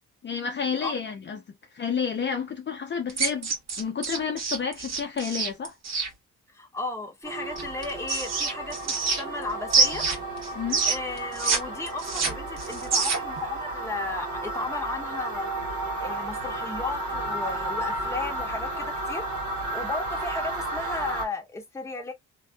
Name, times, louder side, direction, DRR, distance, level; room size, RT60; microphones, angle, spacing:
voice 1, 0.2-1.4 1.7-5.8 10.5-10.8, left 6 dB, 40° left, 0.6 m, -30 dB
voice 2, 0.8-1.1 6.5-10.1 10.9-15.5 16.0-19.3 19.7-22.1, left 3 dB, 10° left, 0.8 m, -35 dB
sound 1, 3.1-6.1 7.6-9.4 9.7-11.6 11.9-13.4, right 4 dB, 60° right, 1.3 m, -26 dB
sound 2, 7.2-21.2, right 2 dB, 75° right, 1.4 m, -33 dB
2.6 x 2.3 x 2.2 m
cardioid pair, 90°, 30 cm